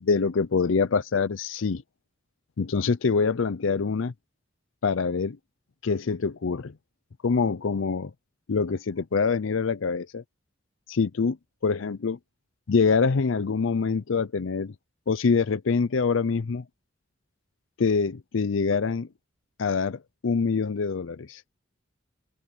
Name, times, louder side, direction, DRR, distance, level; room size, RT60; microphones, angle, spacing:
voice 1, 0.0-1.8 2.6-4.1 4.8-5.4 5.8-6.7 7.2-8.1 8.5-10.2 10.9-11.4 11.6-12.2 12.7-14.7 15.1-16.6 17.8-19.1 19.6-21.4, left 5 dB, 70° left, 0.5 m, -25 dB
head